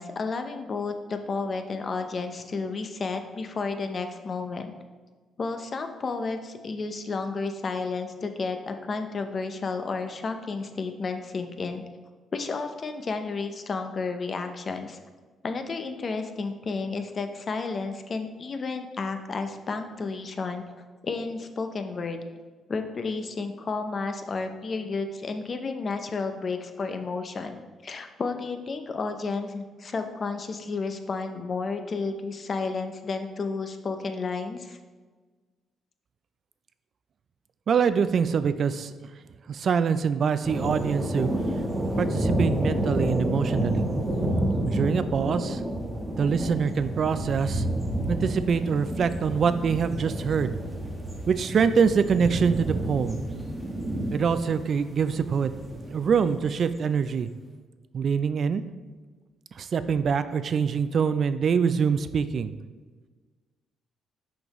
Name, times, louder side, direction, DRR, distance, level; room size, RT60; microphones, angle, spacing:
voice 1, 0.0-4.7 5.4-11.8 12.3-15.0 15.4-20.6 21.0-22.2 22.7-34.8, left 4 dB, 45° left, 7 dB, 0.6 m, -32 dB
voice 2, 37.7-38.9 39.5-41.6 42.0-43.8 44.6-45.6 46.2-47.7 48.1-50.6 51.3-53.2 54.1-55.5 55.8-57.3 57.9-58.6 59.5-62.5, right 6 dB, 55° right, 12 dB, 0.3 m, -24 dB
sound 1, 40.4-56.5, right 1 dB, 15° right, 1.1 m, -30 dB
6.0 x 5.2 x 3.1 m, 1.4 s
cardioid pair, 90°, 0 cm